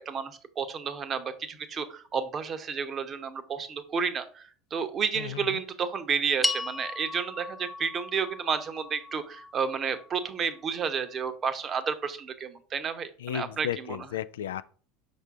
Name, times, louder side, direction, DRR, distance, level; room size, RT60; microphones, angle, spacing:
voice 1, 0.0-14.1, right 6 dB, 35° right, 0.9 m, -31 dB
sound 1, 6.4-10.9, left 2 dB, 5° left, 0.5 m, -36 dB
voice 2, 13.2-14.6, left 11 dB, 70° left, 0.3 m, -34 dB
6.1 x 5.4 x 3.6 m
figure-of-eight pair, 75°, 0 cm